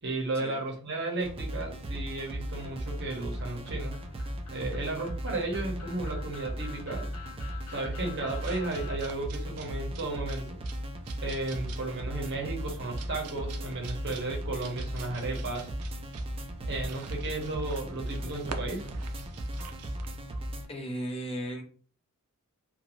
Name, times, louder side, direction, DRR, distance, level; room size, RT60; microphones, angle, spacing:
voice 1, 0.0-4.0 4.5-7.1 7.7-10.6 11.2-15.7 16.7-18.9, right 2 dB, 50° right, 0 dB, 0.8 m, -34 dB
sound 1, 1.2-20.7, equal, 25° right, 0.4 m, -37 dB
sound 2, 2.6-9.1, left 7 dB, 85° left, 0.6 m, -49 dB
sound 3, 8.3-20.2, right 5 dB, 90° right, 0.4 m, -47 dB
voice 2, 20.7-21.6, right 1 dB, 25° left, 2 dB, 0.6 m, -35 dB
2.5 x 2.3 x 2.9 m, 0.42 s
head